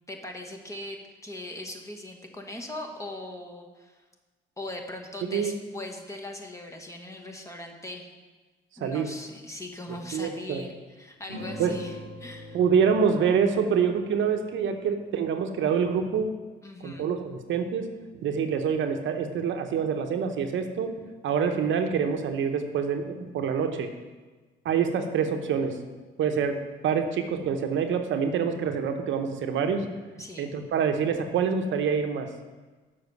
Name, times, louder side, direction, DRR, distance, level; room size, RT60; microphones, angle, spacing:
voice 1, 0.1-4.0 4.6-8.1 8.8-12.6 16.6-17.1 30.2-30.5, left 1 dB, 15° left, 2 dB, 1.2 m, -40 dB
voice 2, 5.2-5.5 8.8-9.1 10.1-10.6 11.6-11.7 12.5-16.3 16.8-17.9 18.2-20.9 21.2-23.9 24.6-25.8 26.2-26.6 26.8-29.8 30.4-32.3, right 6 dB, 75° right, 6 dB, 0.8 m, -26 dB
sound 1, 11.3-16.2, equal, 80° left, 2.7 m, -44 dB
7.1 x 5.5 x 6.6 m, 1.3 s
cardioid pair, 90°, 20 cm